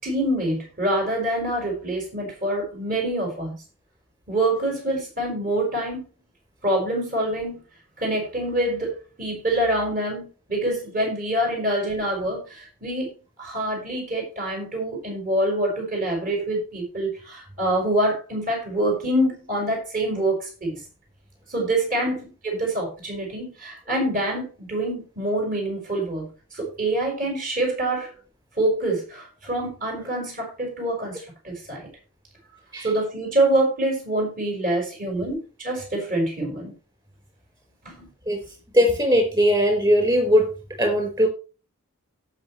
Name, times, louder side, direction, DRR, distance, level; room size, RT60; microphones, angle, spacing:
voice 1, 0.0-3.6 4.3-6.1 6.6-7.6 8.0-13.1 13.4-20.8 21.5-26.3 26.5-28.1 28.6-31.8 32.8-36.7 37.8-38.1, right 1 dB, 40° right, -1 dB, 5.9 m, -25 dB
voice 2, 38.7-40.5 40.8-41.3, equal, 20° right, 3 dB, 4.7 m, -19 dB
17.5 x 6.1 x 3.2 m, 0.34 s
head